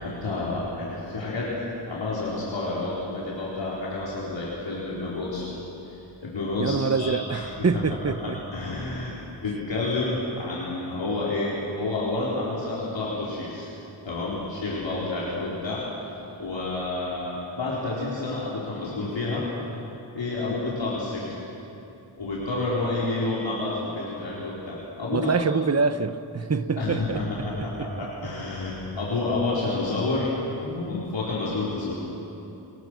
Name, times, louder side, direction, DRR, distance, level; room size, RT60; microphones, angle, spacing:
voice 1, 0.0-1.5 1.9-5.5 5.8-7.8 8.2-9.2 9.4-13.7 14.0-15.8 16.4-19.4 20.1-21.4 22.2-25.3 26.8-27.7 28.0-30.3 30.6-31.9, left 2 dB, 90° left, 4.3 m, -29 dB
voice 2, 6.6-8.4 25.1-28.1, right 5 dB, 35° right, 0.9 m, -26 dB
27.0 x 22.5 x 6.3 m
wide cardioid pair, 95°, 43 cm